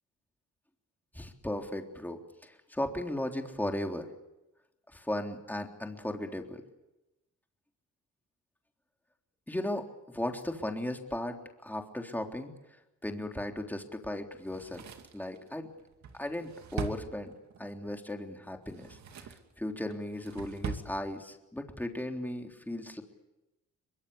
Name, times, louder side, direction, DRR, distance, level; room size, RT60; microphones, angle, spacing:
voice 1, 1.1-4.1 4.9-6.6 9.5-12.5 13.0-14.9 15.1-15.7 16.2-17.3 17.6-23.0, left 1 dB, 5° left, 3 dB, 3.5 m, -36 dB
Drawer open or close, 14.4-17.7 18.6-19.5 19.9-20.9 21.2-21.3, right 6 dB, 65° right, 2.6 m, -41 dB
23.0 x 23.0 x 8.4 m, 0.97 s
cardioid pair, 90°, 30 cm